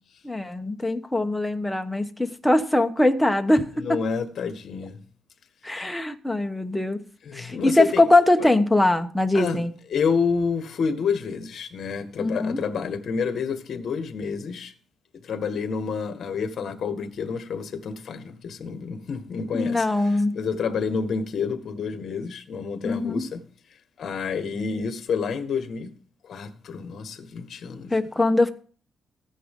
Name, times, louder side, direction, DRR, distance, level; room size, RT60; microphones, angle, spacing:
voice 1, 0.2-4.0 5.6-7.0 7.3-9.7 12.2-12.6 19.5-20.3 22.8-23.2 27.9-28.5, left 2 dB, 5° left, 1.1 m, -22 dB
voice 2, 3.7-5.0 7.2-8.1 8.4-8.5 9.3-9.6 9.9-14.7 15.2-19.9 20.3-23.4 24.0-25.9 26.2-28.0, left 5 dB, 50° left, 1.7 m, -29 dB
15.0 x 10.0 x 3.8 m
cardioid pair, 155°, 0 cm